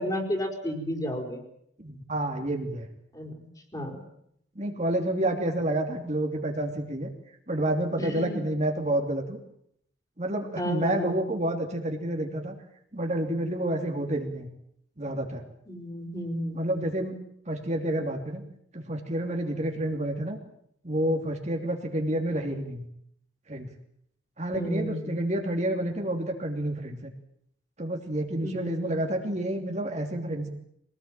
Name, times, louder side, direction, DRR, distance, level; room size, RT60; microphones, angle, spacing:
voice 1, 0.0-1.4 3.1-3.3 3.7-4.0 8.0-8.4 10.6-11.1 15.7-16.8 24.5-25.1 28.4-28.9, equal, 20° left, 2 dB, 4.6 m, -32 dB
voice 2, 1.8-2.9 4.5-7.1 7.5-9.4 10.2-12.5 12.9-14.5 15.0-15.4 16.5-17.2 17.5-18.4 18.7-20.4 20.8-22.9 23.5-23.7 24.4-27.1 27.8-30.5, right 1 dB, 35° right, 3 dB, 3.0 m, -29 dB
24.5 x 19.0 x 9.0 m, 0.72 s
head